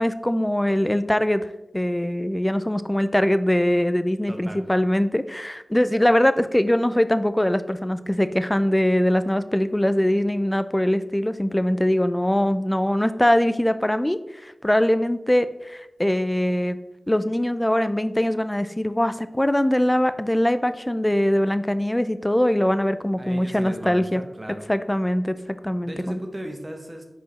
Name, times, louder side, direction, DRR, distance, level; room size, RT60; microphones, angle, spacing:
voice 1, 0.0-1.5 1.7-16.8 17.1-24.2 24.7-25.4 25.6-26.2, left 1 dB, 15° left, 12 dB, 0.4 m, -22 dB
voice 2, 4.3-4.7 23.2-24.7 25.8-27.0, right 1 dB, 30° right, 4 dB, 0.9 m, -36 dB
5.0 x 4.6 x 4.1 m, 0.97 s
wide cardioid pair, 50°, 0 cm